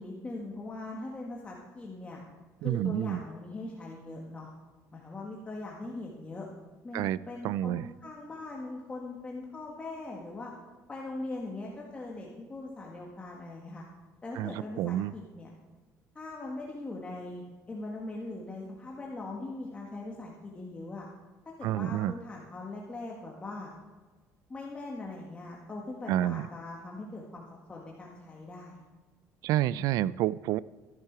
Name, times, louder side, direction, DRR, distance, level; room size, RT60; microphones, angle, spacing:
voice 1, 0.0-2.2 2.6-4.5 4.9-6.5 6.8-10.5 10.9-13.8 14.2-15.5 16.1-21.1 21.4-23.7 24.5-27.4 27.7-28.8, left 2 dB, 20° left, -2 dB, 1.7 m, -41 dB
voice 2, 2.6-3.2 6.9-7.2 7.4-7.9 14.4-14.5 14.8-15.1 21.6-22.1 26.1-26.4 29.4-30.6, right 13 dB, 75° right, 19 dB, 0.3 m, -28 dB
14.5 x 10.5 x 4.7 m, 1.3 s
cardioid pair, 145°, 6 cm